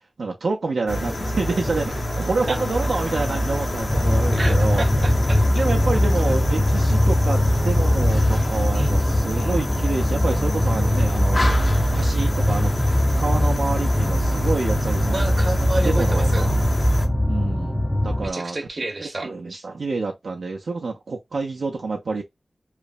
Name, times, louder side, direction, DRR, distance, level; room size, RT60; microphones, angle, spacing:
voice 1, 0.2-4.8 5.5-11.4 11.9-12.7 13.2-15.3 15.8-16.5 17.3-18.6 19.0-22.2, right 3 dB, 85° right, 0.5 m, -28 dB
sound 1, 0.9-17.1, equal, 55° left, 0.8 m, -26 dB
sound 2, 3.9-18.3, left 1 dB, 5° left, 0.4 m, -21 dB
voice 2, 4.3-5.6 6.2-6.3 8.7-9.5 15.1-16.5 18.2-19.3, right 2 dB, 55° right, 0.8 m, -30 dB
3.1 x 2.0 x 2.4 m
wide cardioid pair, 80°, 0 cm